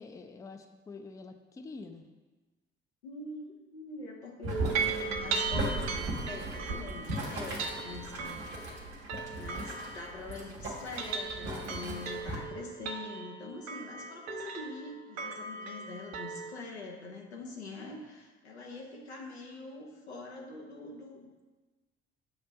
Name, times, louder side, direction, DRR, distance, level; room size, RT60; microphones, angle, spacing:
voice 1, 0.0-2.0, left 3 dB, 10° left, 6 dB, 0.4 m, -46 dB
voice 2, 3.0-5.9 6.3-8.7 9.3-21.3, left 3 dB, 80° left, 0 dB, 0.7 m, -44 dB
Boiling, 4.4-12.4, right 1 dB, 80° right, 0.9 m, -38 dB
sound 1, 4.5-10.5 10.8-16.5, right 4 dB, 55° right, 0.7 m, -38 dB
6.7 x 2.5 x 5.6 m, 1.2 s
figure-of-eight pair, 45°, 32 cm